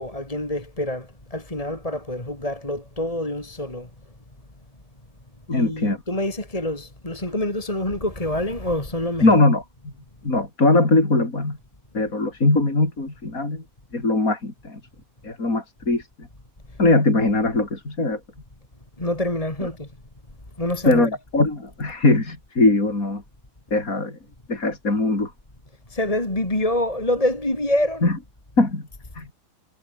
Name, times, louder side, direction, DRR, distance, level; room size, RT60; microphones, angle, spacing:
voice 1, 0.0-3.9 5.5-9.3 19.0-19.9 20.6-21.1 25.9-28.1, left 1 dB, 20° left, 3.7 m, -26 dB
voice 2, 5.5-6.0 9.2-9.9 10.2-11.6 11.9-13.6 13.9-14.8 15.2-16.3 16.8-18.2 19.6-19.7 20.9-23.2 23.7-24.2 24.5-25.3 28.0-28.1 28.6-28.8 29.2-29.3, left 2 dB, 55° left, 5.6 m, -21 dB
omnidirectional pair, 1.8 m